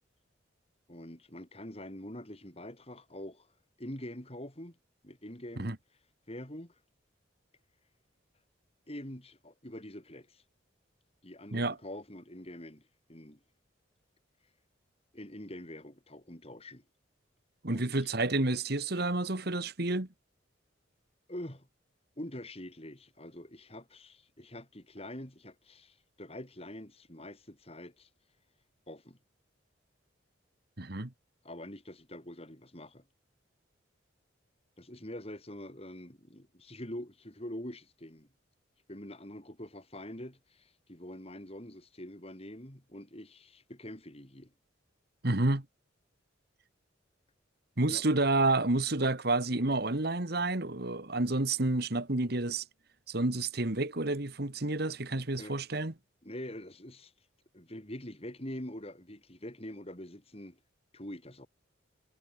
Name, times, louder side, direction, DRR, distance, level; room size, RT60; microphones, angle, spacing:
voice 1, 0.9-3.5 3.8-4.8 5.0-5.7 6.3-6.8 8.9-10.4 11.2-12.8 13.1-13.4 15.1-16.8 17.7-18.0 21.3-21.7 22.2-28.1 28.9-29.2 31.4-33.1 34.8-38.3 38.9-44.5 47.9-48.0 55.4-55.6 56.2-57.1 57.5-60.6 60.9-61.5, left 1 dB, 30° left, 4.4 m, -45 dB
voice 2, 17.6-20.1 30.8-31.1 45.2-45.6 47.8-52.6 53.1-55.9, right 2 dB, 55° right, 1.9 m, -29 dB
head